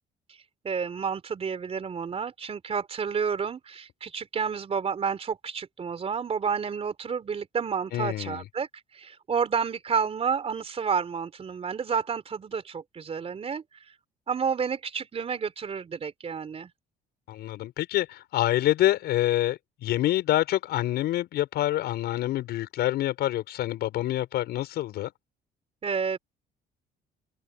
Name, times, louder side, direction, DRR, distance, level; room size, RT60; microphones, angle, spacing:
voice 1, 0.6-13.6 14.3-16.7 25.8-26.2, right 6 dB, 35° right, 4.0 m, -30 dB
voice 2, 7.9-8.4 17.3-25.1, left 14 dB, 75° left, 6.4 m, -26 dB
cardioid pair, 110°, 17 cm